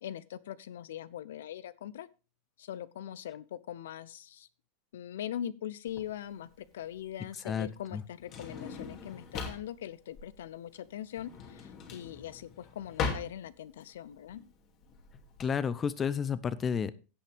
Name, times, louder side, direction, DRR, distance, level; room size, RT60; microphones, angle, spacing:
voice 1, 0.0-2.1 2.6-4.5 4.9-14.4, left 10 dB, 85° left, 18 dB, 0.6 m, -41 dB
Drawer open or close, 5.9-15.5, left 5 dB, 40° left, 2.6 m, -40 dB
voice 2, 7.4-8.0 15.4-16.9, left 7 dB, 25° left, 17 dB, 0.7 m, -31 dB
16.5 x 5.6 x 3.5 m, 0.33 s
supercardioid pair, 130°, 0 cm